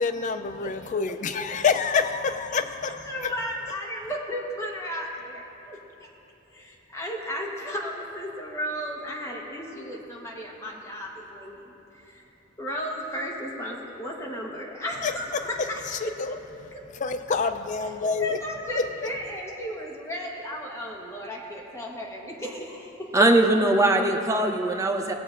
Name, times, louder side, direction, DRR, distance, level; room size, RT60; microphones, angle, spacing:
voice 1, 0.0-3.3 15.0-15.4 15.9-16.4 16.9-18.4 18.7-19.1, left 5 dB, 40° left, 8 dB, 0.4 m, -27 dB
voice 2, 3.1-5.8 6.5-11.7 12.0-12.2 12.6-16.1 16.7-16.8 17.8-17.9 18.2-23.2, equal, 15° left, -2 dB, 1.1 m, -34 dB
voice 3, 23.1-25.1, right 2 dB, 15° right, 4 dB, 0.5 m, -21 dB
18.5 x 7.7 x 2.5 m, 3.0 s
head